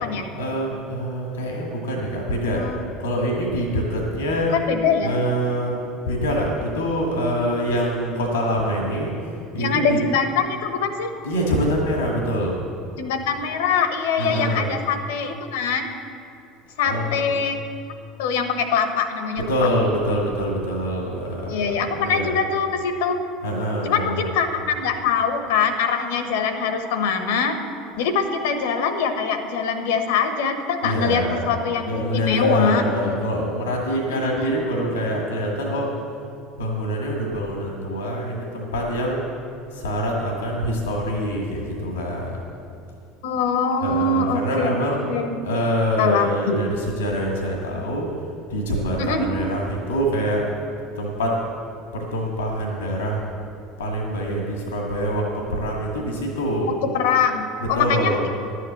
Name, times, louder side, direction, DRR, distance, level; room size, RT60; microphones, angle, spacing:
voice 1, 0.4-2.6 3.0-4.6 5.0-5.8 6.1-10.0 11.2-12.6 14.2-14.7 16.8-17.4 19.4-22.4 23.4-24.4 30.8-31.5 31.9-35.9 36.6-39.2 39.7-42.4 43.8-45.0 45.4-48.1 48.5-50.5 51.0-51.4 51.9-53.2 53.8-56.8 57.6-58.3, equal, 85° left, -1 dB, 1.8 m, -25 dB
voice 2, 4.5-5.2 9.6-11.1 13.0-15.9 16.8-17.6 18.2-19.5 21.5-23.2 23.8-27.6 28.0-32.8 33.9-34.6 43.2-45.4 46.0-46.6 49.0-49.3 56.9-58.3, left 5 dB, 70° left, 7 dB, 1.2 m, -23 dB
11.5 x 8.3 x 7.5 m, 2.5 s
hypercardioid pair, 70°, 0 cm